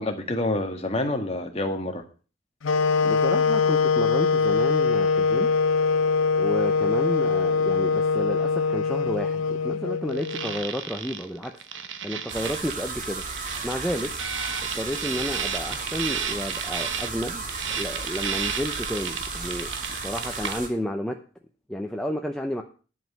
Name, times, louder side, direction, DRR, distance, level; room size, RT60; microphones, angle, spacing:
voice 1, 0.0-2.0, left 1 dB, 30° left, 4 dB, 1.7 m, -27 dB
sound 1, 2.6-10.6, left 5 dB, 85° left, 0.6 m, -23 dB
voice 2, 3.0-5.5 6.4-11.6 12.0-13.2 13.6-14.1 14.7-17.4 17.7-21.2 21.7-22.6, equal, 5° left, 2 dB, 0.7 m, -31 dB
sound 2, 10.1-20.6, right 7 dB, 70° right, 1.1 m, -33 dB
sound 3, 12.3-20.7, right 3 dB, 40° right, 2.4 m, -34 dB
11.0 x 5.5 x 7.6 m, 0.37 s
head